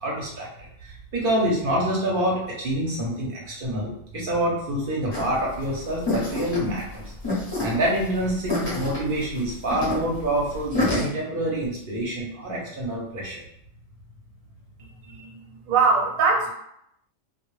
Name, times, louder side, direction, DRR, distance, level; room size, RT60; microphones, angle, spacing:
voice 1, 0.0-0.5 0.8-7.0 7.6-13.4, right 1 dB, 50° right, -4 dB, 0.7 m, -26 dB
sound 1, 5.1-11.0, left 2 dB, 30° left, 0.5 m, -28 dB
voice 2, 14.8-16.5, right 4 dB, 90° right, 0 dB, 1.0 m, -23 dB
2.1 x 2.1 x 3.0 m, 0.76 s
omnidirectional pair, 1.4 m